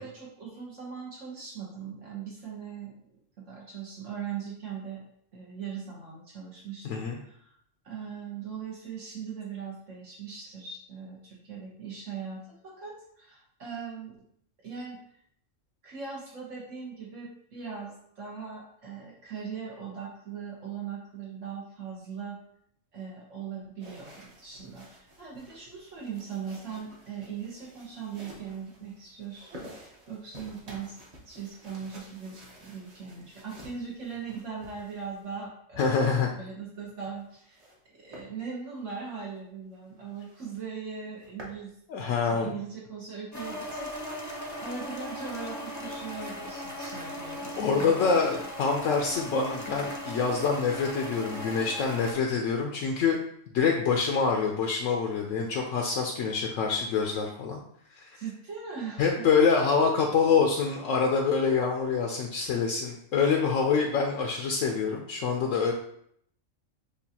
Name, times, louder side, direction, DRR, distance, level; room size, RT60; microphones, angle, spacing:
voice 1, 0.0-5.0 5.3-7.5 7.8-14.2 14.6-15.2 15.8-22.4 22.9-29.6 30.1-31.0 31.2-37.7 38.0-41.7 42.2-47.9 58.1-59.3, right 6 dB, 70° right, -4 dB, 1.3 m, -40 dB
voice 2, 6.8-7.2 35.8-36.3 41.9-42.5 47.6-53.2 53.5-57.6 57.9-58.2 59.0-65.7, left 5 dB, 75° left, 1 dB, 0.9 m, -26 dB
sound 1, 23.8-35.5 36.8-37.8 38.1-38.3 38.8-39.0 39.4-39.5 39.7-39.8 40.1-40.6 41.0-41.6, equal, 35° right, 0.9 m, -51 dB
sound 2, 43.3-52.1, equal, 20° left, 0.5 m, -38 dB
6.7 x 2.4 x 2.8 m, 0.69 s
omnidirectional pair, 1.4 m